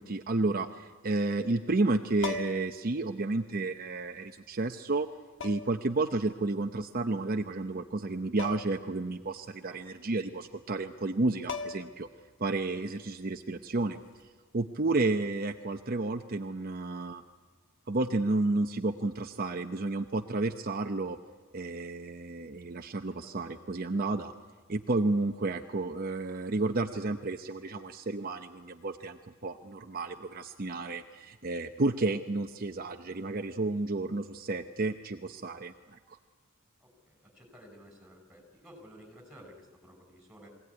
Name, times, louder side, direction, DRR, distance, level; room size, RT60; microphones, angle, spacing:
voice 1, 0.0-5.1 5.4-12.1 12.4-14.0 14.5-17.2 17.9-21.2 21.5-24.3 24.7-36.0, right 2 dB, 45° right, 6 dB, 0.8 m, -31 dB
sound 1, 2.2-2.8 4.1-4.2 5.4-5.8 8.4-8.8 9.1-9.2 11.1-11.2 11.5-12.1 14.0-14.2, left 5 dB, 60° left, 1.5 m, -38 dB
voice 2, 23.1-23.6 36.8-40.5, equal, 5° right, 3 dB, 5.9 m, -54 dB
23.0 x 17.0 x 9.7 m, 1.5 s
head